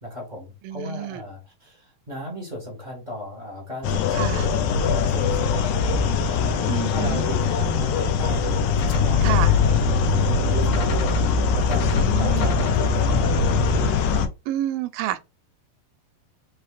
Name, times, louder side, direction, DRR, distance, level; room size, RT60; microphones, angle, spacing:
voice 1, 0.0-6.0 6.2-13.7, equal, 25° right, 0.9 m, -36 dB
voice 2, 0.7-1.2 4.1-4.5 6.7-7.2 9.2-9.5 12.0-12.5 14.5-15.2, right 13 dB, 80° right, 2.1 m, -28 dB
sound 1, 3.8-14.3, left 6 dB, 85° left, 1.7 m, -22 dB
sound 2, 8.8-13.9, left 1 dB, 65° left, 1.8 m, -27 dB
5.6 x 3.4 x 2.5 m
omnidirectional pair, 4.3 m